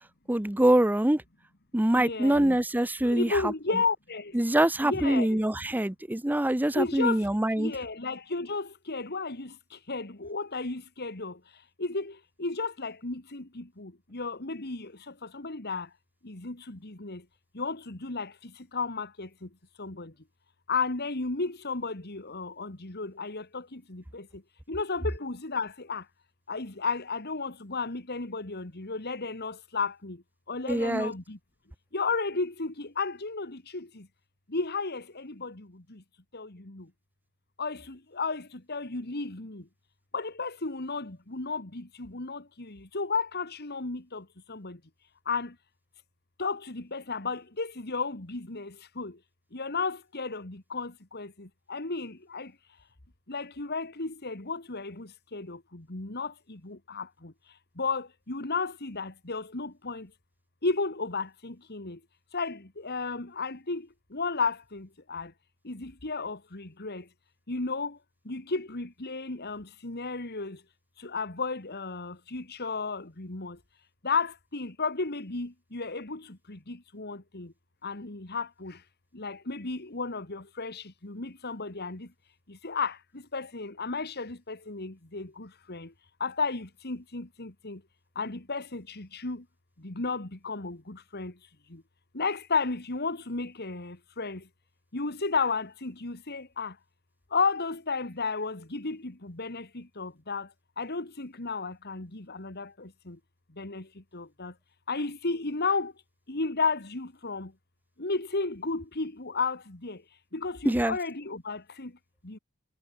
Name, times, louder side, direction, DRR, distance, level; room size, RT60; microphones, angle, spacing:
voice 1, 0.3-1.2 1.7-3.5 4.3-7.7 30.7-31.1 110.6-111.0, right 1 dB, 10° right, 0.7 m, -24 dB
voice 2, 1.9-2.6 3.0-4.3 4.8-5.4 6.7-7.2 7.6-9.5 9.9-11.4 11.8-15.9 16.2-17.2 17.5-19.5 19.8-20.1 20.7-24.3 24.7-26.0 26.5-30.2 30.5-31.4 31.9-34.1 34.5-36.0 36.3-36.9 37.6-39.6 40.1-44.8 45.3-45.5 46.4-49.2 49.5-52.5 53.3-57.3 57.8-60.1 60.6-62.0 62.3-65.3 65.6-67.0 67.5-68.0 68.3-70.6 71.0-73.6 74.0-77.5 77.8-78.8 79.1-82.1 82.5-85.9 86.2-87.8 88.2-89.4 89.8-91.3 91.7-91.8 92.1-94.4 94.9-96.7 97.3-100.5 100.8-103.2 103.6-103.9 104.1-104.5 104.9-105.9 106.3-107.5 108.0-110.0 110.3-111.9 112.2-112.4, left 4 dB, 50° left, 2.2 m, -33 dB
head